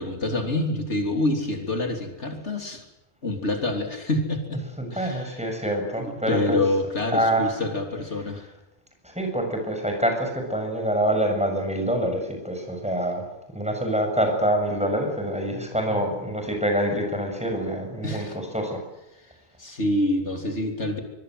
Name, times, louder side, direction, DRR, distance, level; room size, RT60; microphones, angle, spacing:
voice 1, 0.0-2.9 3.2-4.6 4.9-5.4 6.0-8.5 15.9-16.0 18.0-18.4 19.2-19.3 19.6-21.0, left 2 dB, 75° left, 3 dB, 3.7 m, -27 dB
voice 2, 4.6-6.6 7.0-7.6 8.1-8.4 9.0-13.2 13.5-18.8, right 1 dB, 5° right, 3 dB, 7.2 m, -26 dB
25.0 x 23.5 x 8.0 m, 0.96 s
omnidirectional pair, 1.2 m